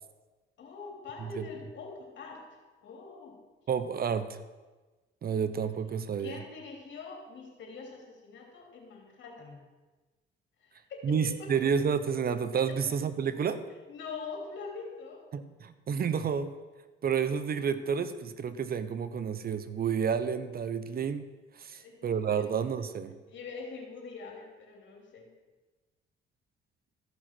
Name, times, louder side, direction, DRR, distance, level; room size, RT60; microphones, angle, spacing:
voice 1, 0.6-2.5 2.8-3.4 6.2-9.6 10.6-11.5 12.7-12.8 13.9-15.3 21.7-22.1 22.4-22.5 23.3-25.3, left 4 dB, 70° left, 1 dB, 3.1 m, -44 dB
voice 2, 3.7-4.4 5.2-6.4 11.0-13.6 15.3-16.5 17.0-21.3 21.6-23.1, right 7 dB, 50° right, 12 dB, 0.8 m, -30 dB
14.0 x 6.1 x 6.0 m, 1.2 s
cardioid pair, 90°, 20 cm